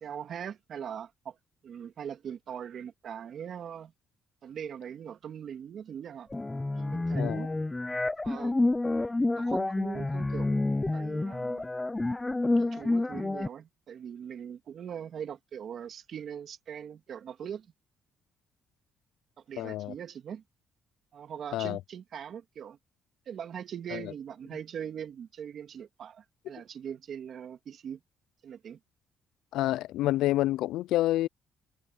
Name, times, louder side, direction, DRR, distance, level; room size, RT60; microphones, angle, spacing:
voice 1, 0.0-1.4 1.6-3.9 4.4-6.3 6.7-7.5 8.2-8.5 9.3-10.6 10.9-11.7 12.5-17.7 19.5-20.4 21.1-22.8 23.3-28.0 28.4-28.8, right 8 dB, 60° right, 2.5 m, -41 dB
sound 1, 6.3-13.5, left 2 dB, 15° left, 0.4 m, -29 dB
voice 2, 7.2-7.5 19.6-19.9 21.5-21.8 23.9-24.1 29.5-31.3, left 15 dB, 90° left, 0.3 m, -28 dB
cardioid pair, 90°, 0 cm